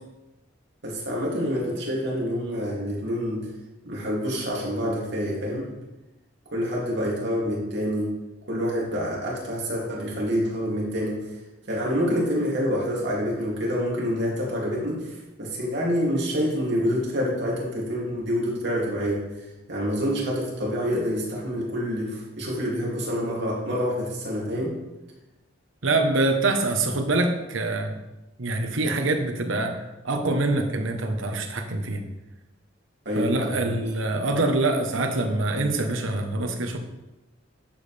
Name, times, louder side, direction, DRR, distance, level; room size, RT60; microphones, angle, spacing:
voice 1, 0.8-3.5 3.8-5.7 6.5-8.1 8.5-11.2 11.7-19.3 19.7-24.8 33.0-33.9, equal, 60° right, -4 dB, 2.7 m, -27 dB
voice 2, 25.8-27.9 28.4-32.0 33.2-36.8, right 2 dB, 80° right, 5 dB, 1.2 m, -25 dB
11.0 x 7.4 x 3.4 m, 1.0 s
head